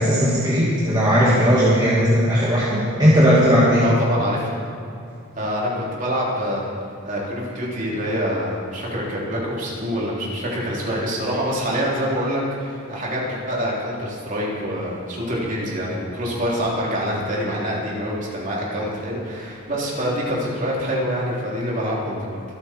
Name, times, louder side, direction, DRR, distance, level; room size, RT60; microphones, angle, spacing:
voice 1, 0.0-3.9, equal, 20° right, -8 dB, 2.2 m, -17 dB
voice 2, 3.8-4.5 5.4-6.7 7.0-22.4, equal, 40° right, -5 dB, 3.5 m, -26 dB
25.5 x 8.8 x 4.6 m, 2.6 s
head